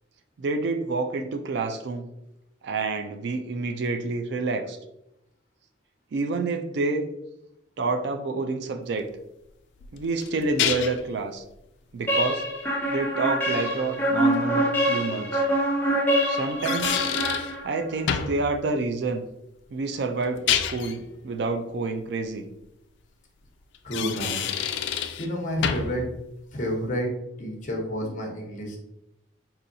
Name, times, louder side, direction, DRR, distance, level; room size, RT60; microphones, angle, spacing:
voice 1, 0.4-2.1 2.6-4.8 6.1-7.0 7.8-9.1 9.9-11.4 11.9-12.4 12.9-15.4 16.3-17.0 17.6-19.3 19.7-22.4, right 3 dB, 65° right, 7 dB, 0.4 m, -28 dB
sound 1, 9.8-11.1 14.3-14.4 16.3-17.5 18.1-18.4 20.2-21.0 23.7-25.3 25.6-26.0, left 8 dB, 65° left, 0.3 m, -27 dB
sound 2, 12.1-17.9, equal, 10° left, 0.6 m, -25 dB
voice 2, 23.8-24.5 25.2-26.0 26.5-27.1 27.4-28.8, equal, 40° left, 0 dB, 0.8 m, -29 dB
4.0 x 2.7 x 2.7 m, 0.85 s
head